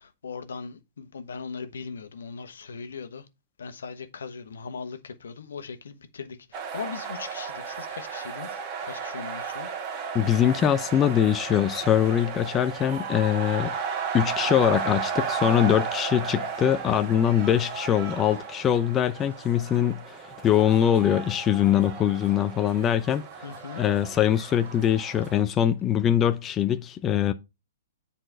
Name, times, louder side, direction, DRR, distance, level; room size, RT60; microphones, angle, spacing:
voice 1, 0.0-3.3 3.6-9.7 23.4-23.8, left 5 dB, 80° left, 1.1 m, -39 dB
sound 1, 6.5-25.4, right 6 dB, 35° right, 1.7 m, -34 dB
voice 2, 10.1-13.7 14.1-23.2 23.8-27.3, left 10 dB, 20° left, 0.5 m, -23 dB
7.8 x 4.2 x 4.5 m
hypercardioid pair, 130°, 0 cm